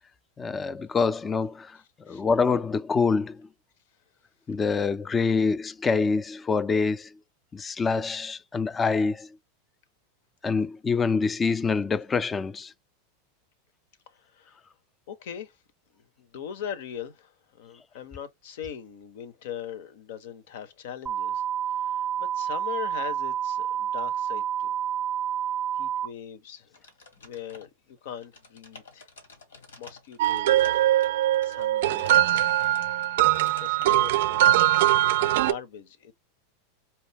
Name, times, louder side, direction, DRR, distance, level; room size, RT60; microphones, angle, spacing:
voice 1, 0.4-1.8 2.1-3.4 4.5-7.1 7.5-9.3 10.4-12.7, left 4 dB, 20° left, 0.4 m, -25 dB
voice 2, 14.1-14.6 15.1-15.6 15.9-21.4 21.8-24.7 25.7-26.8 27.2-29.1 29.8-30.7 31.4-32.5 33.6-36.1, left 9 dB, 70° left, 0.9 m, -41 dB
sound 1, 21.1-26.1, right 9 dB, 20° right, 0.6 m, -29 dB
sound 2, 26.7-27.9 28.2-34.2, left 4 dB, 85° left, 1.4 m, -49 dB
sound 3, 30.2-35.5, right 13 dB, 70° right, 0.4 m, -22 dB
4.3 x 2.0 x 3.4 m
hypercardioid pair, 100°, 0 cm